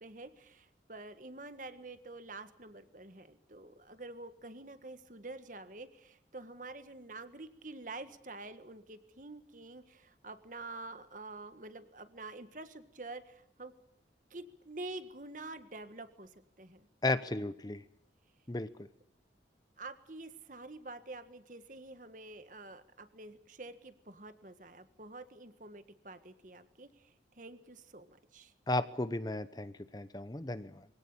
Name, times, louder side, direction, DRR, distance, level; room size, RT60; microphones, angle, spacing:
voice 1, 0.0-13.7 14.3-16.9 19.8-28.5, right 2 dB, 45° right, 10 dB, 1.7 m, -48 dB
voice 2, 17.0-17.8 18.5-18.7 28.7-30.9, left 2 dB, 20° left, 13 dB, 0.8 m, -34 dB
24.5 x 17.0 x 8.5 m, 0.80 s
head